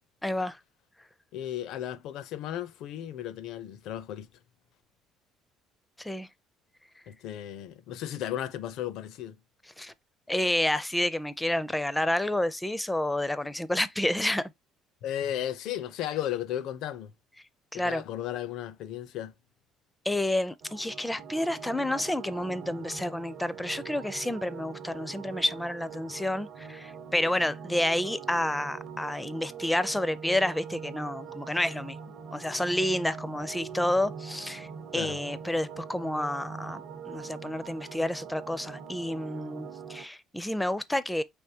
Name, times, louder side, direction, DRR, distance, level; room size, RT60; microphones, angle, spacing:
voice 1, 0.2-0.6 6.0-6.3 9.8-9.9 10.3-14.5 17.7-18.0 20.0-32.0 32.3-34.7 34.9-41.2, left 1 dB, 5° left, 0.4 m, -29 dB
voice 2, 1.3-4.3 7.1-9.4 15.0-17.1 17.7-19.3 34.9-35.2, left 11 dB, 70° left, 0.5 m, -35 dB
sound 1, 20.6-40.0, right 6 dB, 55° right, 0.9 m, -43 dB
4.6 x 3.5 x 2.8 m
cardioid pair, 115°, 0 cm